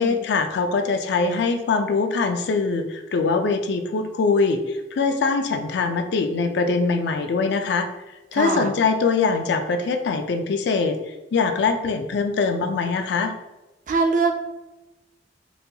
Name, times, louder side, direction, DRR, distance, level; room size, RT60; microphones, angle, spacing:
voice 1, 0.0-7.9 8.3-11.0 11.3-13.3, left 4 dB, 70° left, 7 dB, 0.3 m, -22 dB
voice 2, 8.3-8.7 13.9-14.4, right 4 dB, 45° right, 5 dB, 0.4 m, -22 dB
4.0 x 2.2 x 2.7 m, 1.1 s
head